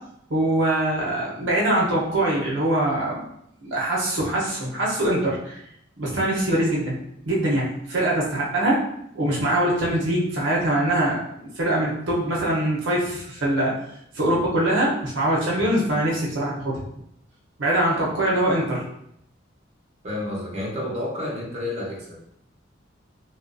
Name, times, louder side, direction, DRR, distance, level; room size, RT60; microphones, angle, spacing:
voice 1, 0.3-3.2 3.6-5.6 6.0-7.0 7.3-8.8 9.1-13.7 14.1-16.8 17.6-18.8, right 1 dB, 75° right, -5 dB, 0.8 m, -23 dB
voice 2, 20.0-22.2, left 1 dB, 35° right, -5 dB, 0.8 m, -30 dB
3.0 x 2.4 x 2.5 m, 0.74 s
head